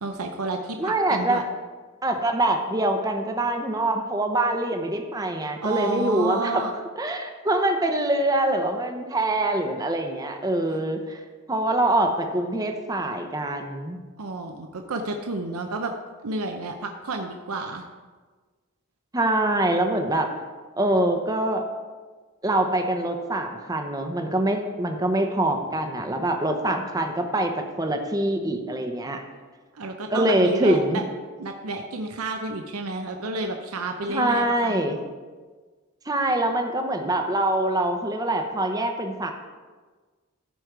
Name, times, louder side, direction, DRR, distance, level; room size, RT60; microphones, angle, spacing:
voice 1, 0.0-1.4 5.6-6.7 14.2-15.9 16.2-17.8 29.7-31.0 31.4-34.8, right 2 dB, 85° right, 4 dB, 0.7 m, -30 dB
voice 2, 0.8-1.4 2.0-6.6 7.0-11.2 11.5-14.0 19.1-20.3 20.8-21.6 22.4-29.2 30.1-31.0 34.1-35.0 36.1-39.3, right 1 dB, 15° right, 4 dB, 0.8 m, -24 dB
14.0 x 5.2 x 4.7 m, 1.4 s
head